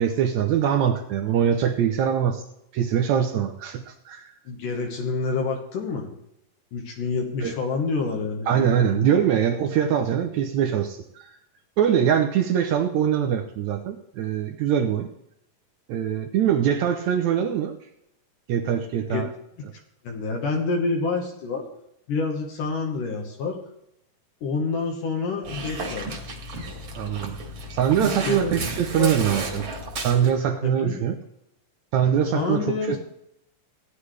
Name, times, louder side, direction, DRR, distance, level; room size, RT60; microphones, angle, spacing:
voice 1, 0.0-2.4 2.7-4.3 7.4-7.5 8.5-11.3 11.8-15.1 15.9-17.8 18.5-19.3 27.0-27.4 27.7-29.6 30.0-31.2 31.9-33.0, right 9 dB, 75° right, 5 dB, 1.7 m, -23 dB
voice 2, 4.5-6.1 6.7-9.1 19.1-19.2 20.0-21.7 22.1-23.6 24.4-26.2 28.3-28.5 29.0-29.6 30.6-31.0 32.3-33.0, left 4 dB, 70° left, 1 dB, 2.9 m, -28 dB
Dog, 25.4-30.3, right 2 dB, 45° right, 2.1 m, -33 dB
16.5 x 9.9 x 3.3 m, 0.80 s
omnidirectional pair, 4.0 m